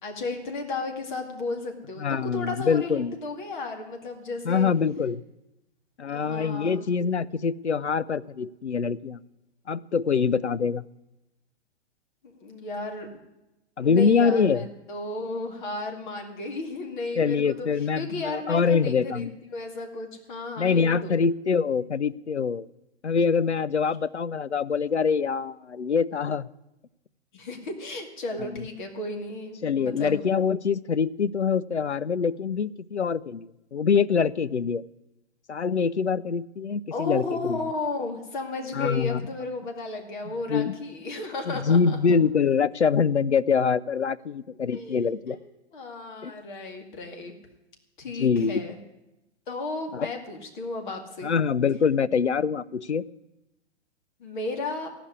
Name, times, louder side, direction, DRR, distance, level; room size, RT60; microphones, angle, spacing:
voice 1, 0.0-4.7 6.1-6.8 12.2-13.1 13.8-17.7 18.0-21.1 27.3-30.2 36.9-42.2 44.7-45.4 45.7-47.3 48.0-48.8 49.5-51.3 54.2-54.9, left 2 dB, 45° left, 4 dB, 2.3 m, -34 dB
voice 2, 2.0-3.1 4.5-5.2 6.0-9.2 9.7-10.9 13.8-14.7 17.2-19.3 20.6-22.7 23.0-26.5 28.4-28.5 29.6-34.8 35.5-37.6 38.7-39.2 40.5-40.7 41.5-45.4 46.2-46.3 48.2-48.6 49.9-50.1 51.2-53.0, left 6 dB, 90° left, 17 dB, 0.5 m, -24 dB
15.5 x 6.0 x 9.6 m, 0.95 s
figure-of-eight pair, 115°, 33 cm